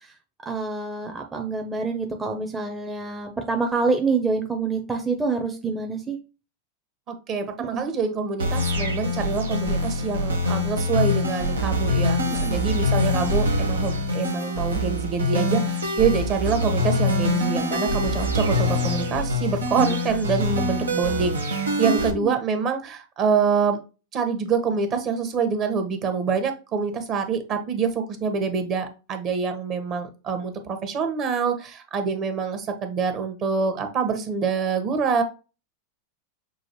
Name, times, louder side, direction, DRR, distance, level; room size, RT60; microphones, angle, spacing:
voice 1, 0.5-6.2 7.7-7.8 12.3-12.5 19.7-19.9 21.9-22.3, right 4 dB, 15° right, 3 dB, 0.7 m, -26 dB
voice 2, 7.1-23.8 24.1-35.2, right 5 dB, 40° right, 6 dB, 1.1 m, -26 dB
sound 1, 8.4-22.1, left 1 dB, 90° right, 0.9 m, -24 dB
6.1 x 2.5 x 3.0 m, 0.32 s
hypercardioid pair, 95°, 0 cm